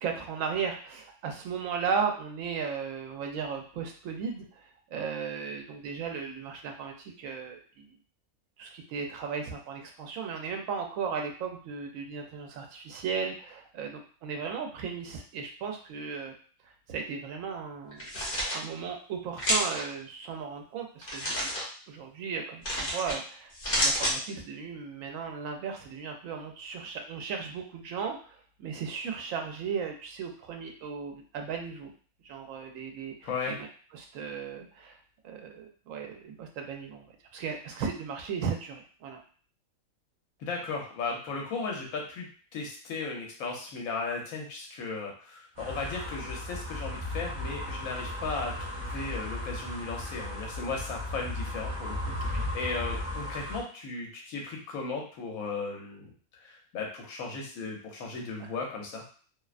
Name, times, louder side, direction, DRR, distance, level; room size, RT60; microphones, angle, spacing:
voice 1, 0.0-7.9 8.6-16.3 16.9-18.1 18.5-21.6 21.9-31.9 32.2-33.7 33.9-35.0 35.2-37.0 37.3-39.2 52.2-52.5, right 6 dB, 70° right, 3 dB, 0.9 m, -36 dB
sound 1, 17.9-18.6 19.4-19.8 21.0-21.6 22.6-23.2 23.5-24.1, equal, 45° left, 1.0 m, -29 dB
voice 2, 33.2-33.5 40.4-42.3 42.5-48.5 48.8-56.1 56.4-59.0, left 4 dB, 75° left, 0 dB, 1.1 m, -36 dB
sound 2, 45.6-53.6, left 1 dB, 35° right, 0.4 m, -36 dB
2.6 x 2.1 x 2.4 m, 0.42 s
omnidirectional pair, 1.5 m